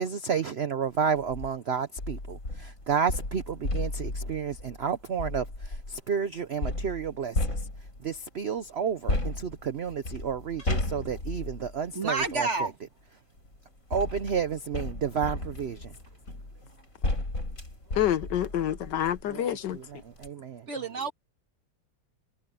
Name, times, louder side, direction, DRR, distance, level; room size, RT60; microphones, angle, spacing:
voice 1, 0.0-7.4 8.0-12.7 13.9-15.9 19.3-19.8 20.2-20.7, right 7 dB, 60° right, 0.6 m, -31 dB
sound 1, 1.2-1.5 2.0-6.0 6.6-8.2 9.1-12.4 13.4-19.3 19.7-19.8 20.1-20.3, left 2 dB, 45° left, 6.0 m, -34 dB
voice 2, 11.9-12.8 20.7-21.1, right 3 dB, 40° right, 2.0 m, -29 dB
voice 3, 17.9-20.0, left 11 dB, 70° left, 1.5 m, -28 dB
omnidirectional pair, 2.0 m